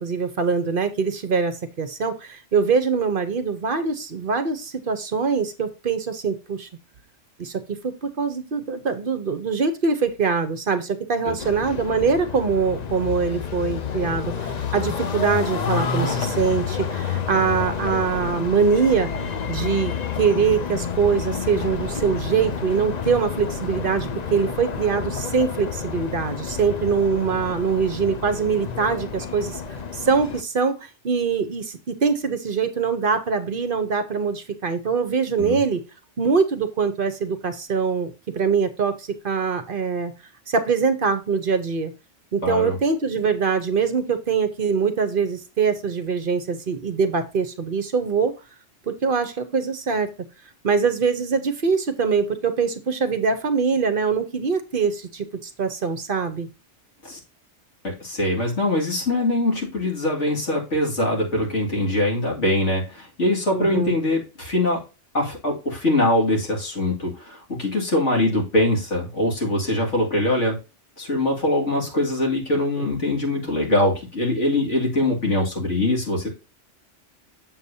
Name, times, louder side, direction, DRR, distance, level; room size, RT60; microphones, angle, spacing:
voice 1, 0.0-6.7 7.4-19.1 19.5-29.6 29.9-35.8 36.2-40.1 40.5-41.9 42.3-48.3 48.9-50.1 50.6-56.5 63.5-64.0, right 5 dB, 50° right, 10 dB, 0.9 m, -23 dB
sound 1, 11.4-30.4, left 6 dB, 45° left, 0.6 m, -29 dB
voice 2, 42.4-42.8 57.0-57.2 57.8-64.8 65.1-70.6 71.0-76.3, left 1 dB, 80° left, -1 dB, 2.6 m, -23 dB
7.4 x 6.9 x 2.7 m, 0.29 s
omnidirectional pair, 1.2 m